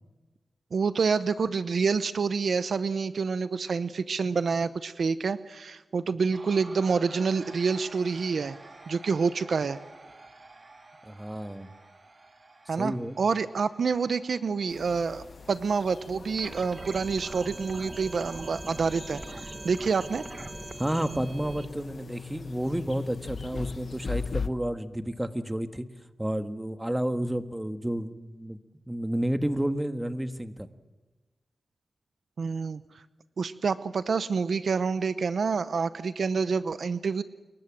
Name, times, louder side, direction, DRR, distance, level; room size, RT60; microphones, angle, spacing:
voice 1, 0.7-8.6 8.9-9.8 12.7-19.2 19.6-20.2 32.4-32.8 33.4-37.2, right 5 dB, 75° right, 13 dB, 0.8 m, -27 dB
sound 1, 6.3-18.3, right 2 dB, 50° right, 3.5 m, -51 dB
voice 2, 11.0-11.7 12.8-13.2 20.8-25.9 26.2-28.6 28.9-30.7, right 1 dB, 10° right, 8 dB, 1.6 m, -31 dB
sound 2, 14.7-24.5, left 5 dB, 65° left, 0.9 m, -40 dB
sound 3, 16.4-21.7, right 2 dB, 35° right, 1.5 m, -41 dB
28.0 x 23.0 x 7.5 m, 1.1 s
cardioid pair, 65°, 0 cm